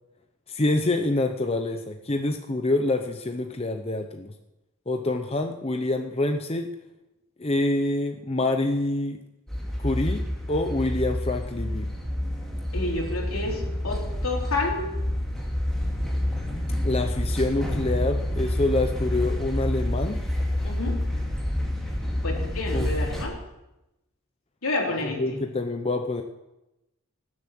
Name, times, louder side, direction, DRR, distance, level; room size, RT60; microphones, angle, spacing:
voice 1, 0.5-4.3 4.9-6.7 7.4-9.2 9.8-11.9 16.8-20.2 22.7-22.9 25.2-26.2, left 2 dB, 25° left, 5 dB, 0.7 m, -26 dB
sound 1, 9.5-23.3, left 1 dB, ahead, 2.5 m, -28 dB
voice 2, 12.7-14.9 20.6-21.0 22.2-23.3 24.6-25.4, left 2 dB, 75° left, 0 dB, 3.4 m, -29 dB
19.0 x 7.4 x 7.7 m, 0.95 s
head